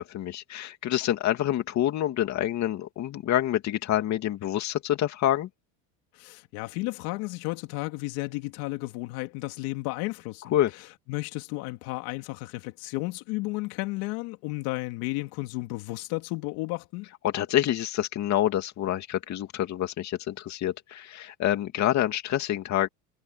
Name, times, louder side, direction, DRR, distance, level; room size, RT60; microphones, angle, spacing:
voice 1, 0.0-5.5 10.5-10.7 17.2-22.9, left 12 dB, 45° left, 2.5 m, -27 dB
voice 2, 6.1-10.6 11.1-17.1, left 22 dB, 70° left, 2.8 m, -33 dB
supercardioid pair, 115°, 38 cm